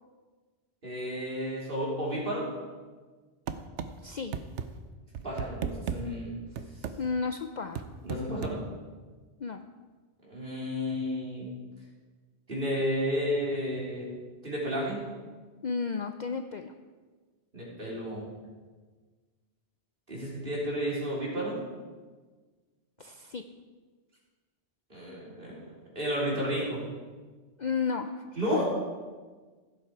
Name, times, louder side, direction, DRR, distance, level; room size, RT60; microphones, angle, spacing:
voice 1, 0.8-2.5 5.2-6.3 8.0-8.6 10.2-11.5 12.5-14.1 14.4-15.0 17.5-18.3 20.1-21.6 24.9-25.7 26.0-26.8 28.4-28.7, equal, 50° right, -5 dB, 3.7 m, -32 dB
sound 1, 3.5-3.9 4.3-4.7 5.1-6.0 6.6-7.0 7.7-8.6, right 7 dB, 80° right, 1.0 m, -34 dB
voice 2, 4.0-4.4 7.0-7.8 9.4-9.6 15.6-16.7 23.0-23.4 27.6-28.2 28.5-28.6, left 5 dB, 50° left, 7 dB, 0.6 m, -32 dB
15.5 x 7.7 x 4.7 m, 1.4 s
omnidirectional pair, 1.2 m